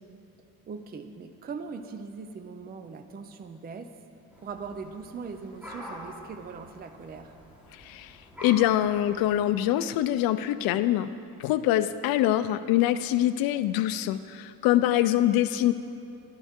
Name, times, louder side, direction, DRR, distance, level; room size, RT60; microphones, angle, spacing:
voice 1, 0.7-3.9 4.4-7.3, right 5 dB, 25° right, 7 dB, 0.6 m, -40 dB
sound 1, 4.3-9.4, equal, 5° right, 3.7 m, -46 dB
voice 2, 7.7-11.1 11.4-15.7, left 13 dB, 90° left, 12 dB, 0.6 m, -24 dB
24.0 x 11.5 x 3.7 m, 2.8 s
cardioid pair, 150°, 34 cm